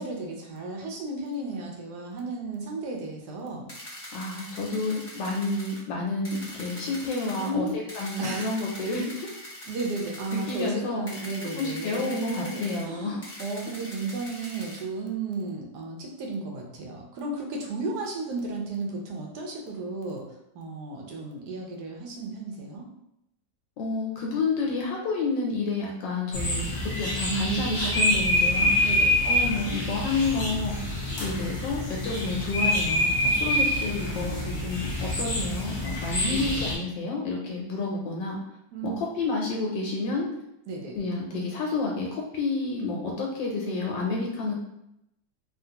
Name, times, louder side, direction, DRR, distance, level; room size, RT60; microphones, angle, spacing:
voice 1, 0.0-3.7 7.4-7.7 8.2-8.5 9.7-20.2 20.5-22.8 27.3-28.0 28.8-29.2 31.3-31.5 33.9-34.8 36.2-36.7 38.7-39.0 40.7-41.0, right 3 dB, 70° right, 0 dB, 1.2 m, -34 dB
sound 1, 3.7-5.8 6.2-7.5 7.9-10.7 11.1-12.8 13.2-14.8, left 1 dB, 20° left, 0.8 m, -42 dB
voice 2, 4.1-9.3 10.3-11.0 11.6-13.2 23.8-28.7 29.2-30.8 31.2-38.4 38.8-40.3 41.0-44.5, left 3 dB, 80° left, -1 dB, 1.3 m, -30 dB
sound 2, 26.3-36.8, left 1 dB, 50° left, 0.9 m, -26 dB
3.5 x 2.5 x 2.8 m, 0.81 s
omnidirectional pair, 2.0 m